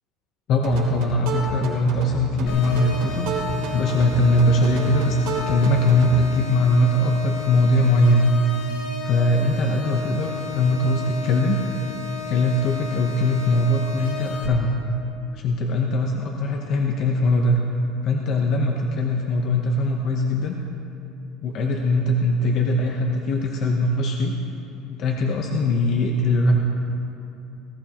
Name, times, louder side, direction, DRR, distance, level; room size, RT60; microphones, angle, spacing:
voice 1, 0.5-3.3 3.7-5.2 5.4-8.4 9.0-11.6 12.3-14.8 15.3-17.6 18.0-20.6 21.4-24.3 25.0-26.6, left 1 dB, 40° left, 1 dB, 0.9 m, -21 dB
sound 1, 0.6-6.3, right 4 dB, 75° right, 3.1 m, -31 dB
sound 2, 2.5-14.5, left 4 dB, 70° left, 3.0 m, -34 dB
18.5 x 14.0 x 3.0 m, 2.8 s
cardioid pair, 165°, 0 cm